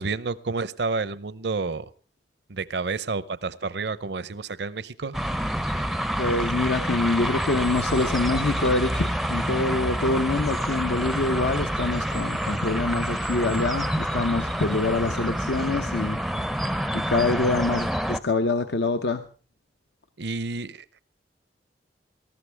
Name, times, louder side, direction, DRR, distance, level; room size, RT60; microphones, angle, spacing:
voice 1, 0.0-1.9 2.5-5.2 20.2-20.8, right 4 dB, 70° right, 16 dB, 0.7 m, -30 dB
sound 1, 5.1-18.2, equal, ahead, 0.6 m, -27 dB
voice 2, 6.2-16.2 16.9-19.3, left 3 dB, 65° left, 8 dB, 0.8 m, -25 dB
19.5 x 14.0 x 3.4 m, 0.40 s
head